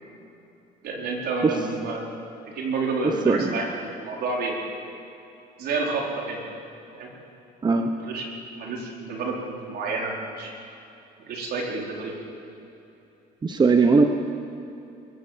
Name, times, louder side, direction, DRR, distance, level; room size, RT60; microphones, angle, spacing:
voice 1, 0.8-2.1 2.5-4.5 5.6-6.4 6.9-7.1 8.0-10.5 11.3-12.1, right 3 dB, 70° right, -1 dB, 4.5 m, -29 dB
voice 2, 13.4-14.0, right 4 dB, 25° right, 6 dB, 1.1 m, -18 dB
22.0 x 16.0 x 7.6 m, 2.9 s
cardioid pair, 110°, 17 cm